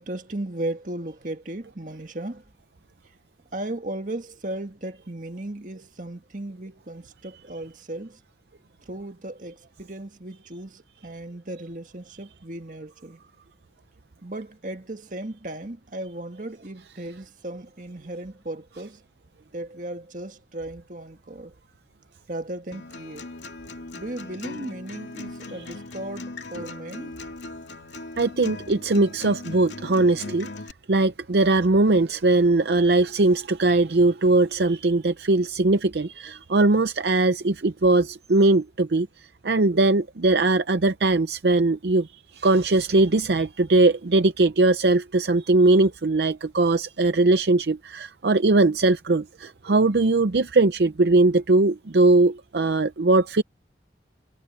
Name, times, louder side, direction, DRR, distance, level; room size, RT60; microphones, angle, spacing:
voice 1, 0.0-2.4 3.5-8.2 8.9-13.2 14.2-19.0 19.5-21.5 22.3-23.3 23.9-27.3 30.3-30.4, right 1 dB, 45° right, 1.7 m, -36 dB
Acoustic guitar, 22.7-30.7, left 2 dB, 85° left, 2.5 m, -39 dB
voice 2, 28.2-30.5 30.9-39.1 39.4-42.1 42.3-53.4, right 2 dB, 65° right, 0.6 m, -20 dB
head